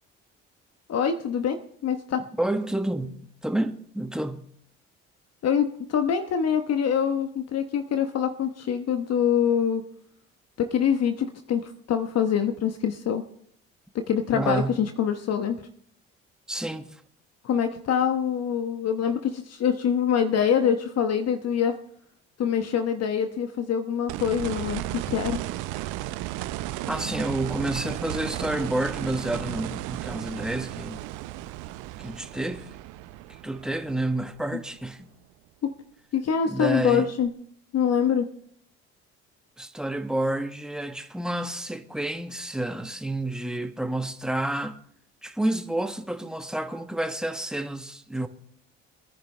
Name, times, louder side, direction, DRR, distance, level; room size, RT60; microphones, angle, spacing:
voice 1, 0.9-2.2 5.4-9.8 10.6-13.2 13.9-15.7 17.4-21.8 22.4-25.4 35.6-35.7 36.1-37.3 37.7-38.3, left 8 dB, 50° left, 1.1 m, -25 dB
voice 2, 2.4-4.5 14.3-14.8 16.5-16.9 26.9-31.0 32.0-32.7 33.3-35.1 36.5-37.1 39.6-44.8 45.2-48.3, right 1 dB, ahead, 1.3 m, -29 dB
sound 1, 24.1-35.0 37.3-37.4, right 15 dB, 70° right, 0.7 m, -34 dB
23.5 x 10.5 x 3.3 m
hypercardioid pair, 60°, 32 cm